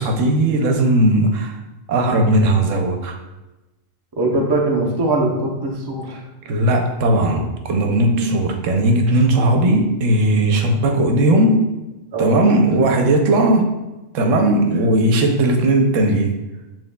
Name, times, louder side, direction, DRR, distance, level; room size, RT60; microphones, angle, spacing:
voice 1, 0.0-1.5 1.9-3.2 6.5-11.7 12.2-13.7 14.1-16.3, right 1 dB, 85° right, 4 dB, 1.0 m, -17 dB
voice 2, 4.2-6.2 7.9-8.3 10.3-10.5 12.1-12.4 12.8-12.9, right 2 dB, 30° right, 0 dB, 0.5 m, -22 dB
7.3 x 2.9 x 2.2 m, 1.0 s
omnidirectional pair, 1.3 m